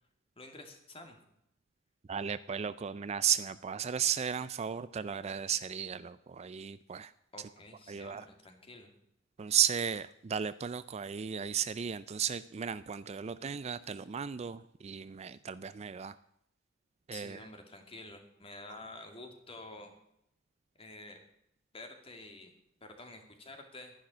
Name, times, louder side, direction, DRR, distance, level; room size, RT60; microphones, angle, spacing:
voice 1, 0.4-1.2 7.3-8.9 17.1-20.0 20.8-21.2 21.7-22.5 22.8-23.9, left 2 dB, 30° left, 5 dB, 2.3 m, -49 dB
voice 2, 2.1-7.1 7.9-8.3 9.4-16.2 17.1-17.4, right 8 dB, 35° right, 15 dB, 0.4 m, -34 dB
12.5 x 10.5 x 6.2 m, 0.77 s
head